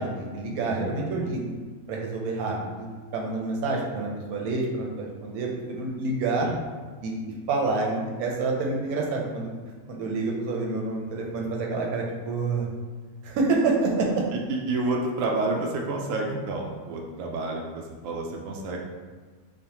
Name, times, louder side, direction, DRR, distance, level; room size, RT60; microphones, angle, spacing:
voice 1, 0.0-1.4 1.9-2.9 3.1-6.5 7.0-7.2 7.5-9.5 9.9-12.7 13.2-14.2, right 3 dB, 90° right, -1 dB, 1.1 m, -28 dB
voice 2, 0.7-1.0 6.4-6.5 14.3-18.9, right 2 dB, 70° right, 0 dB, 0.9 m, -29 dB
5.4 x 2.1 x 2.9 m, 1.4 s
omnidirectional pair, 1.5 m